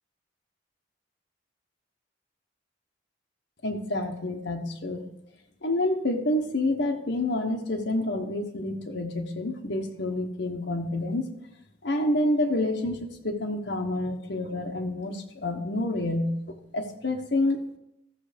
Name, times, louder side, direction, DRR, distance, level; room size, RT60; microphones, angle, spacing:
voice 1, 3.6-5.1 5.6-11.3 11.8-13.0 13.2-17.7, left 1 dB, 65° left, 3 dB, 1.1 m, -28 dB
14.0 x 7.0 x 5.1 m, 0.84 s
head